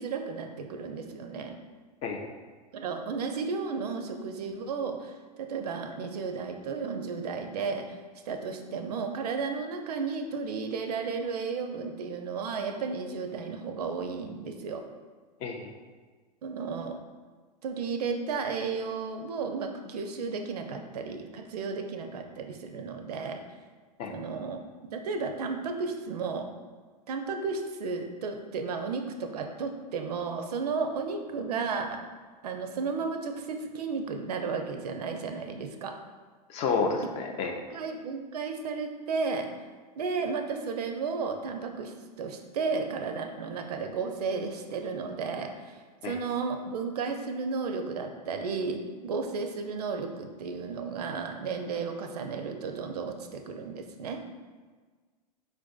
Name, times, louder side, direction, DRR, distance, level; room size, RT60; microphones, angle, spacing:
voice 1, 0.0-1.5 2.7-7.8 8.3-14.8 16.4-17.0 17.6-23.4 24.1-24.6 24.9-26.5 27.1-32.0 32.4-36.0 37.7-39.5 40.0-45.8 46.0-54.2, right 4 dB, 70° right, 5 dB, 0.4 m, -33 dB
voice 2, 2.0-2.3 15.4-15.7 24.0-24.1 36.5-37.6 46.0-46.1, left 4 dB, 30° left, 3 dB, 0.4 m, -30 dB
4.3 x 2.5 x 2.3 m, 1.4 s
figure-of-eight pair, 95°, 21 cm